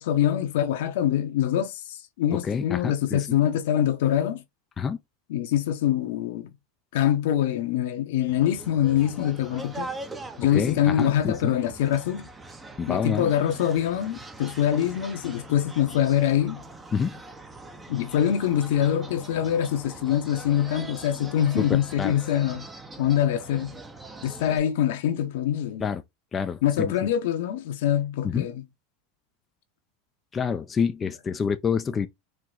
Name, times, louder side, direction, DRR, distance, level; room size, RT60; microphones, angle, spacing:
voice 1, 0.0-4.4 5.3-6.5 6.9-9.9 10.4-12.3 12.9-16.6 17.9-22.7 23.0-23.8 24.2-25.9 26.6-28.6, left 10 dB, 75° left, 0.9 m, -24 dB
voice 2, 2.4-3.4 4.8-5.0 10.5-11.5 12.8-13.3 16.9-17.2 21.6-22.1 25.8-26.0 26.3-27.1 28.2-28.5 30.3-32.1, left 6 dB, 20° left, 0.4 m, -27 dB
sound 1, 8.3-24.6, right 2 dB, 10° right, 0.7 m, -42 dB
4.7 x 2.2 x 3.8 m
supercardioid pair, 130°, 0 cm